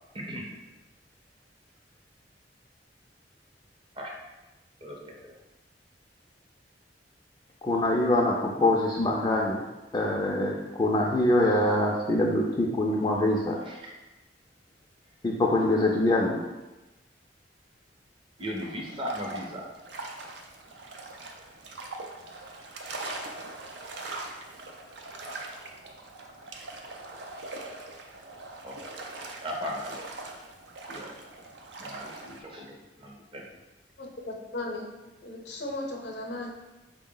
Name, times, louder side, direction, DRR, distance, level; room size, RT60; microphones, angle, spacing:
voice 1, 0.1-0.5 4.0-4.2 4.8-5.3 13.6-14.0 18.4-19.7 25.2-25.4 28.6-28.8 29.4-30.0 30.9-31.2 31.8-33.5, equal, 30° right, -1 dB, 0.6 m, -37 dB
voice 2, 7.6-9.6 9.9-13.6 15.2-16.4, left 1 dB, 25° left, -3 dB, 0.4 m, -24 dB
sound 1, 18.4-32.4, right 2 dB, 75° right, 0.4 m, -42 dB
voice 3, 34.0-34.9 35.2-36.5, left 2 dB, 75° left, 1 dB, 0.7 m, -36 dB
4.1 x 2.1 x 3.7 m, 1.1 s
head